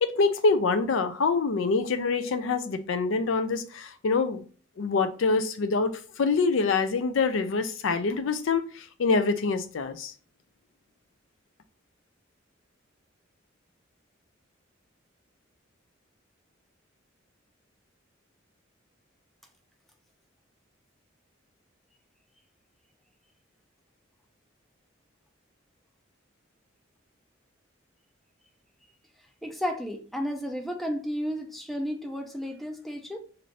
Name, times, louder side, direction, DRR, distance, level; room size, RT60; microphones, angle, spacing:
voice 1, 0.0-4.4 4.8-10.1, left 4 dB, 75° left, 0.4 m, -25 dB
voice 2, 29.4-33.2, equal, ahead, 0.4 m, -32 dB
2.6 x 2.6 x 3.1 m
head